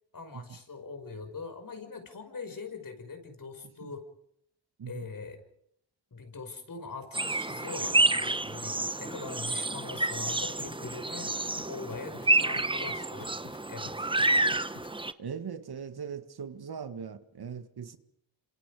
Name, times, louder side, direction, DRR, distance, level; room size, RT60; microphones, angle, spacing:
voice 1, 0.1-4.1 4.9-5.4 6.1-14.5, left 4 dB, 45° left, 5.7 m, -42 dB
sound 1, 7.1-15.1, right 2 dB, 10° right, 1.0 m, -29 dB
sound 2, 9.9-15.0, left 10 dB, 90° left, 1.5 m, -50 dB
voice 2, 15.2-18.0, right 7 dB, 55° right, 1.8 m, -40 dB
27.0 x 26.5 x 5.0 m
cardioid pair, 70°, 45 cm